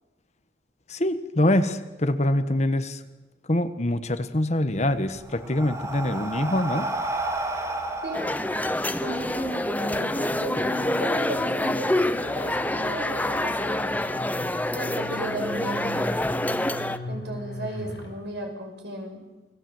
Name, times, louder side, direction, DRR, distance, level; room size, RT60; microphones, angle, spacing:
voice 1, 0.9-3.0 3.5-6.9, left 1 dB, 40° left, 10 dB, 1.4 m, -24 dB
Breathing, 4.8-9.5, right 2 dB, 15° right, 2.0 m, -31 dB
sound 1, 8.1-17.0, left 1 dB, 10° left, 0.8 m, -27 dB
voice 2, 9.0-13.9 14.8-16.2 17.1-19.2, right 1 dB, 80° right, 3 dB, 6.2 m, -35 dB
sound 2, 9.7-18.2, equal, 80° left, 6.7 m, -39 dB
28.5 x 20.0 x 7.9 m, 1.1 s
head